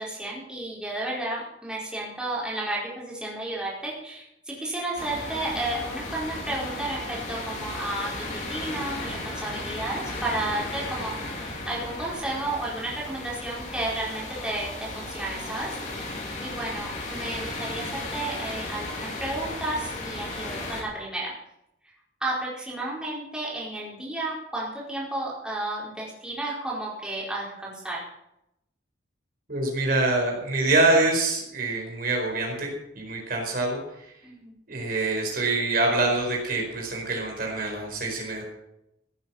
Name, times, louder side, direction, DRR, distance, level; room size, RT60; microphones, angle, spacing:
voice 1, 0.0-21.3 21.8-21.9 22.2-28.0 34.2-34.5, right 2 dB, 5° right, -6 dB, 4.6 m, -32 dB
sound 1, 5.0-20.8, left 2 dB, 40° left, 4.1 m, -35 dB
voice 2, 29.5-33.8 34.7-38.4, right 2 dB, 50° right, 0 dB, 4.6 m, -25 dB
16.5 x 8.9 x 7.1 m, 0.83 s
head